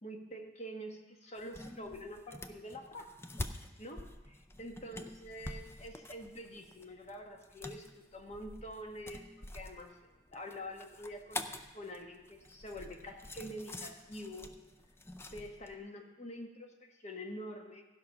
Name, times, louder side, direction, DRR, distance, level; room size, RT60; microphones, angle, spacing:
voice 1, 0.0-3.1 3.4-3.5 3.8-4.1 4.6-10.0 10.3-14.5 15.2-17.8, equal, 35° left, 3 dB, 1.3 m, -46 dB
sound 1, 1.4-15.7, left 2 dB, 15° left, 0.5 m, -47 dB
15.0 x 5.6 x 5.7 m, 1.1 s
head